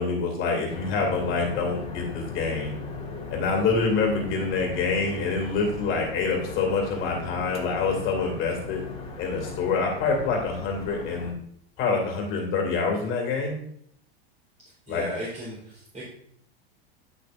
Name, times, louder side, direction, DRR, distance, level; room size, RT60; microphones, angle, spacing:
voice 1, 0.0-2.8 3.3-8.8 9.2-11.3 11.8-13.6 14.9-15.0, left 4 dB, 40° left, 1 dB, 2.4 m, -26 dB
sound 1, 0.7-11.3, left 4 dB, 20° left, 1.8 m, -37 dB
voice 2, 14.9-16.0, equal, 25° right, -7 dB, 3.7 m, -35 dB
12.5 x 5.9 x 2.5 m, 0.67 s
supercardioid pair, 125°, 31 cm